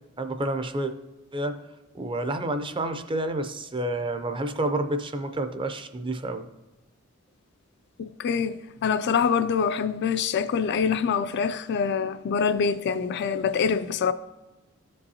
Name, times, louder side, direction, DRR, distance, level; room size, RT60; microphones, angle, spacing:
voice 1, 0.2-0.9 1.3-1.6 1.9-6.5, right 1 dB, 25° right, 0.5 m, -29 dB
voice 2, 8.0-14.1, left 6 dB, 55° left, 0.3 m, -25 dB
13.5 x 5.3 x 2.8 m
head